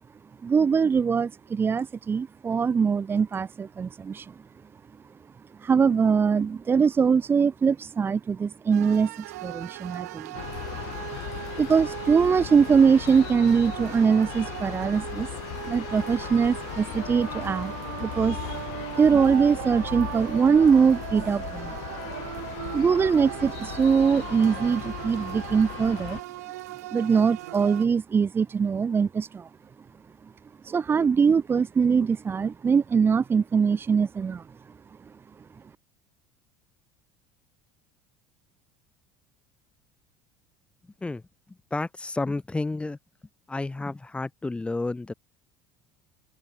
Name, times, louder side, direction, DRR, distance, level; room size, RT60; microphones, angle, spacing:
voice 1, 0.4-4.3 5.6-10.3 11.6-15.3 15.7-17.7 18.0-18.4 19.0-21.7 22.7-26.2 26.9-29.5 30.6-34.4, right 6 dB, 25° right, 1.1 m, -22 dB
sound 1, 8.7-27.9, right 17 dB, 85° right, 1.6 m, -38 dB
sound 2, 10.3-26.2, left 40 dB or more, 70° left, 0.9 m, -38 dB
voice 2, 41.7-43.0 43.5-45.1, left 2 dB, 15° left, 4.8 m, -30 dB
open air
supercardioid pair, 90°, 8 cm